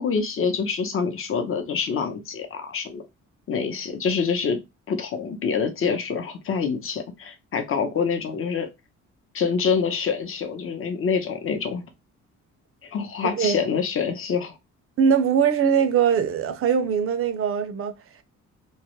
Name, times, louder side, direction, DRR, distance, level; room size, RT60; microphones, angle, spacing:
voice 1, 0.0-3.0 3.5-4.6 4.9-8.7 9.3-11.8 12.8-14.5, left 6 dB, 45° left, 0.7 m, -26 dB
voice 2, 13.2-13.6 15.0-17.9, right 7 dB, 50° right, 0.5 m, -21 dB
2.3 x 2.0 x 2.9 m
cardioid pair, 90°, 30 cm